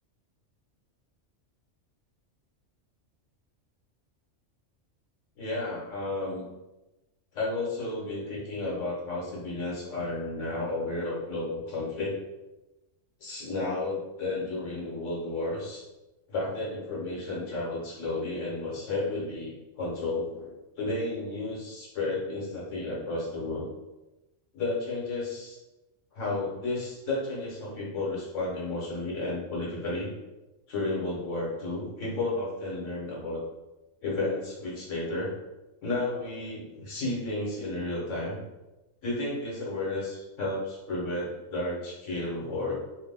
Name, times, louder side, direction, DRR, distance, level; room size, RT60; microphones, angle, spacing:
voice 1, 5.4-6.4 7.3-12.1 13.2-15.8 16.3-20.5 20.8-23.7 24.5-25.6 26.1-30.1 30.7-33.4 34.0-35.3 35.8-38.4 39.0-42.7, left 2 dB, 85° left, -5 dB, 1.4 m, -32 dB
2.8 x 2.1 x 3.4 m, 1.0 s
omnidirectional pair, 1.3 m